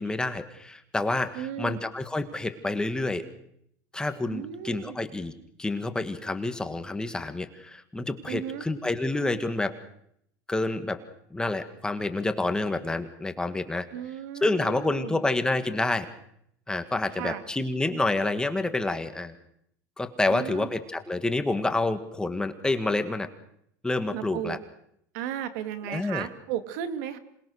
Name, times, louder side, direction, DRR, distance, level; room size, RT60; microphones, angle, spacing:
voice 1, 0.0-3.3 3.9-5.3 5.6-9.8 10.5-11.0 11.3-13.9 14.4-16.1 16.7-19.4 20.0-23.3 23.8-24.6 25.9-26.3, left 2 dB, 10° left, 9 dB, 1.8 m, -28 dB
voice 2, 1.3-1.8 4.3-5.0 8.3-8.7 13.9-15.2 17.1-17.4 20.3-20.7 24.1-24.6 25.1-27.2, right 10 dB, 75° right, 10 dB, 2.4 m, -35 dB
27.0 x 21.0 x 6.5 m, 0.71 s
supercardioid pair, 125°, 9 cm